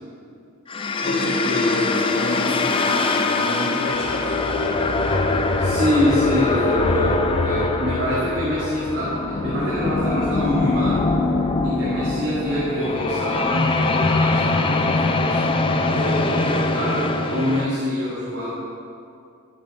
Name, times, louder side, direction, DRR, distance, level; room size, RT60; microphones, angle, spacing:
sound 1, 0.7-17.6, left 3 dB, 25° left, 0.4 m, -22 dB
voice 1, 1.0-4.4, left 1 dB, 65° left, -1 dB, 1.4 m, -29 dB
voice 2, 5.6-11.1 11.6-15.4 15.9-18.5, left 1 dB, 55° right, -9 dB, 1.9 m, -25 dB
11.5 x 7.0 x 3.3 m, 2.5 s
head